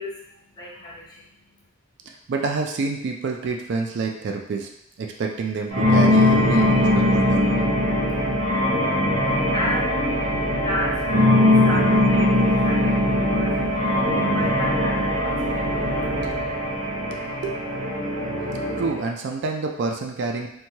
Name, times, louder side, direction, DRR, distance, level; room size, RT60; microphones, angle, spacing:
voice 1, 0.0-1.7 8.2-16.2, equal, 20° left, -5 dB, 0.6 m, -34 dB
voice 2, 2.1-4.7 5.0-7.5 17.1-17.6 18.8-20.5, right 4 dB, 55° right, 2 dB, 0.3 m, -28 dB
sound 1, 5.7-19.0, left 1 dB, 85° right, 0.7 m, -21 dB
3.0 x 2.2 x 2.8 m, 0.75 s
head